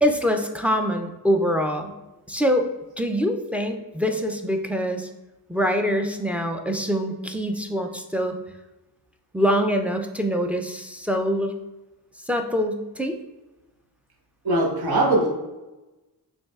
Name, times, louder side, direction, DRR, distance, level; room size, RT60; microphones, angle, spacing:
voice 1, 0.0-1.9 2.3-2.7 3.0-5.1 5.5-8.4 9.3-11.6 12.3-13.2, equal, 5° right, 4 dB, 0.3 m, -24 dB
voice 2, 14.4-15.3, right 2 dB, 65° right, -2 dB, 1.1 m, -20 dB
5.2 x 3.3 x 2.3 m, 1.1 s
wide cardioid pair, 110°, 40 cm